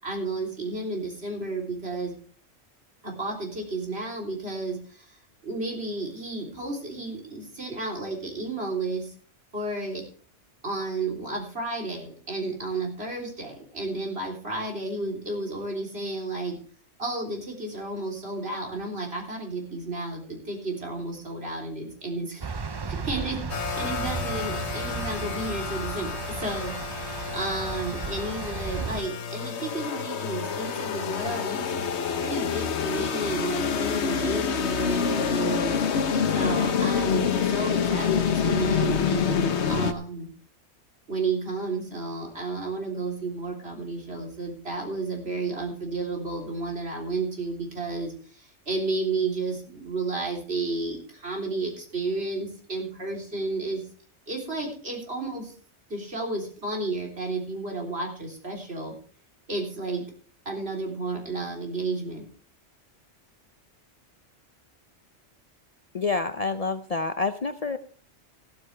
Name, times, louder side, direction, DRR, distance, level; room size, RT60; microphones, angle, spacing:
voice 1, 0.0-2.1 3.0-5.2 5.4-9.1 9.5-10.0 10.6-16.6 17.0-22.4 22.8-23.4 23.7-31.8 32.2-35.8 36.3-40.3 41.1-53.8 54.3-55.5 55.9-59.0 59.5-60.1 60.5-62.3, right 3 dB, 60° right, 0 dB, 3.8 m, -32 dB
sound 1, 22.4-29.0, right 5 dB, 35° right, 0.4 m, -35 dB
sound 2, 23.5-39.9, left 7 dB, 70° left, 1.2 m, -27 dB
voice 2, 65.9-67.8, left 4 dB, 40° left, 9 dB, 0.6 m, -28 dB
14.5 x 13.0 x 3.3 m, 0.42 s
omnidirectional pair, 1.2 m